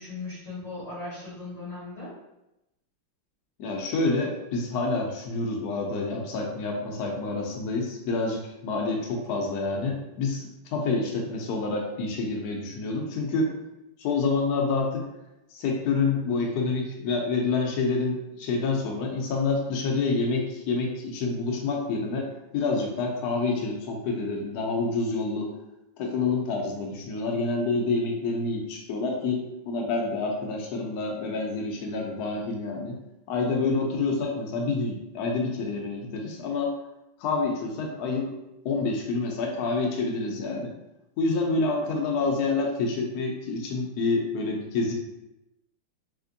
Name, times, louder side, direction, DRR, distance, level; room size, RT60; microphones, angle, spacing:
voice 1, 0.0-2.1, left 3 dB, 35° left, -11 dB, 1.3 m, -38 dB
voice 2, 3.6-13.5 14.0-15.1 15.5-22.3 22.5-25.5 26.0-33.0 33.3-36.7 37.2-38.3 38.6-40.7 41.2-44.9, left 3 dB, 80° left, 0 dB, 0.8 m, -28 dB
3.5 x 3.2 x 2.6 m, 0.90 s
omnidirectional pair, 2.3 m